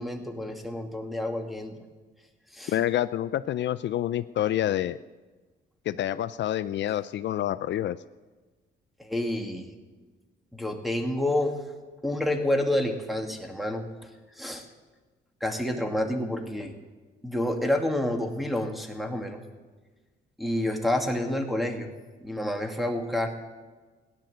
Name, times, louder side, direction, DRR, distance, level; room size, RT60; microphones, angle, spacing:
voice 1, 0.0-1.7 2.5-2.7 9.0-9.7 10.5-11.5 12.0-13.9 14.4-14.6 15.4-16.7 17.2-19.4 20.4-21.9 22.2-23.3, left 1 dB, ahead, 4 dB, 2.4 m, -28 dB
voice 2, 2.7-5.0 5.9-8.0, left 12 dB, 65° left, 14 dB, 0.5 m, -27 dB
16.5 x 10.5 x 7.9 m, 1.3 s
cardioid pair, 90°, 20 cm